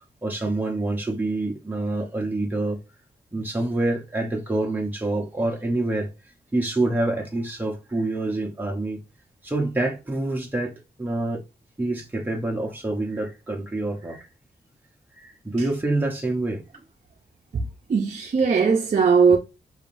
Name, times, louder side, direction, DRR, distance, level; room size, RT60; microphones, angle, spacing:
voice 1, 0.2-2.8 3.3-6.1 6.5-9.0 9.4-11.4 11.8-14.3 15.2-16.6, right 2 dB, 10° right, 0.8 m, -26 dB
voice 2, 17.5-19.4, right 5 dB, 45° right, 0.6 m, -19 dB
5.5 x 3.5 x 2.6 m
wide cardioid pair, 130°, 17 cm